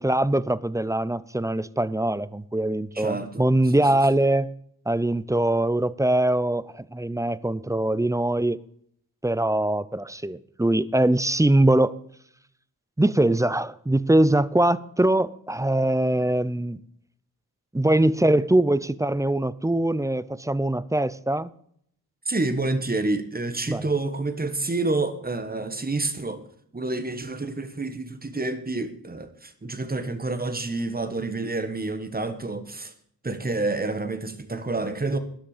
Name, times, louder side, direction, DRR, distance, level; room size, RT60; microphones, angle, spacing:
voice 1, 0.0-4.5 4.9-8.6 9.2-11.9 13.0-16.8 17.7-21.5 23.7-23.9, right 1 dB, 10° right, 0.4 m, -22 dB
voice 2, 2.9-3.8 22.3-26.4 26.7-32.9 33.2-35.2, right 2 dB, 25° right, 1.5 m, -28 dB
13.0 x 10.0 x 5.0 m
wide cardioid pair, 130°, 37 cm